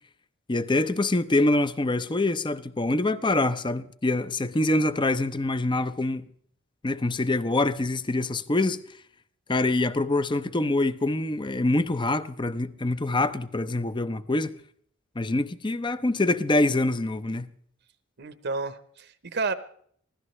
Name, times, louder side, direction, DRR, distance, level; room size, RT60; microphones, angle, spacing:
voice 1, 0.5-6.3 6.8-8.8 9.5-14.5 15.2-17.5, left 2 dB, 20° left, 0.7 m, -25 dB
voice 2, 18.2-19.5, right 3 dB, 50° right, 0.9 m, -31 dB
24.0 x 16.5 x 3.2 m
head